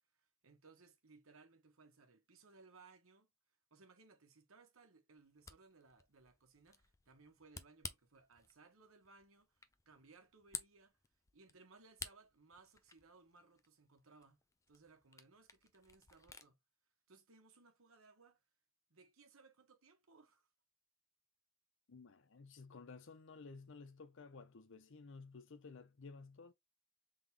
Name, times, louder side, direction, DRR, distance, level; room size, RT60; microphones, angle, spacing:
voice 1, 0.2-3.3 3.7-11.0 11.3-14.4 14.7-16.6 17.1-18.4 18.9-20.5, right 4 dB, 75° right, 1.2 m, -64 dB
Camera, 5.2-16.5, left 4 dB, 15° left, 0.4 m, -55 dB
voice 2, 21.9-26.5, left 4 dB, 60° left, 0.6 m, -54 dB
3.7 x 3.6 x 3.2 m
head